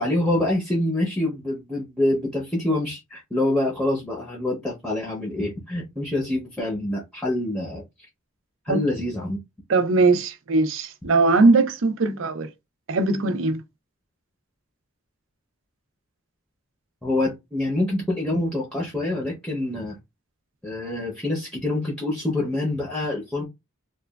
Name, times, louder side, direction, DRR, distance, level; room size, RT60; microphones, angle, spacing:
voice 1, 0.0-7.8 8.6-9.4 17.0-20.0 20.6-23.4, left 1 dB, ahead, 0.6 m, -26 dB
voice 2, 9.7-12.5 12.9-13.6, right 3 dB, 85° right, 0.5 m, -20 dB
2.9 x 2.2 x 2.2 m
head